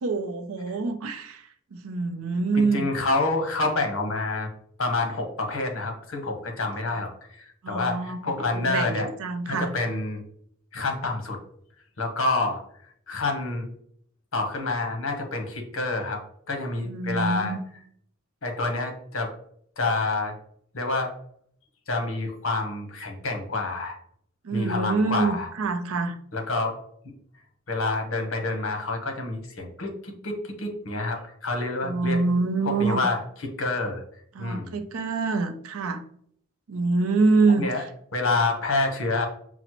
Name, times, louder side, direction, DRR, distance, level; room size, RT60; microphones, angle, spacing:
voice 1, 0.0-2.9 7.6-9.7 16.8-17.6 24.4-26.2 31.8-33.1 34.3-36.0 36.7-37.9, right 3 dB, 85° right, 8 dB, 0.5 m, -26 dB
voice 2, 2.6-4.5 4.8-9.1 9.5-10.2 10.7-11.4 12.0-12.6 13.1-13.6 14.3-16.2 16.5-17.6 18.4-19.3 19.8-20.3 20.7-21.1 21.9-24.0 24.5-25.5 26.3-26.8 27.7-32.2 32.6-34.0 34.4-34.7 37.6-37.8 38.1-39.3, left 3 dB, 65° left, 3 dB, 0.9 m, -28 dB
6.0 x 2.0 x 2.9 m, 0.64 s
head